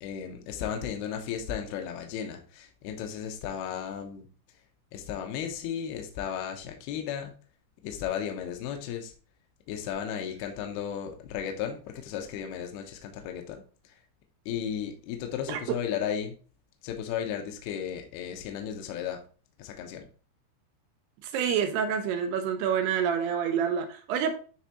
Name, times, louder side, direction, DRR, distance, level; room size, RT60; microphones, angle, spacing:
voice 1, 0.0-4.3 4.9-7.3 7.8-9.1 9.7-14.0 14.5-16.4 16.8-19.2 19.6-20.1, left 8 dB, 75° left, 4 dB, 2.4 m, -35 dB
voice 2, 21.2-24.3, right 7 dB, 85° right, 6 dB, 2.3 m, -27 dB
9.5 x 3.6 x 2.9 m, 0.38 s
omnidirectional pair, 5.5 m